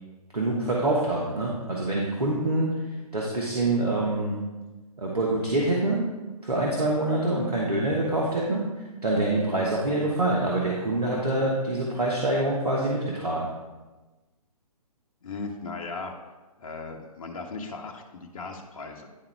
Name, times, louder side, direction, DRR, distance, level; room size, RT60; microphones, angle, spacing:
voice 1, 0.3-2.7 3.1-4.4 5.0-6.0 6.4-8.6 9.0-13.5, right 2 dB, 80° right, -3 dB, 1.2 m, -25 dB
voice 2, 15.2-16.1 16.6-19.1, left 4 dB, 60° left, 2 dB, 0.8 m, -37 dB
10.5 x 3.6 x 3.3 m, 1.2 s
figure-of-eight pair, 130°, 20 cm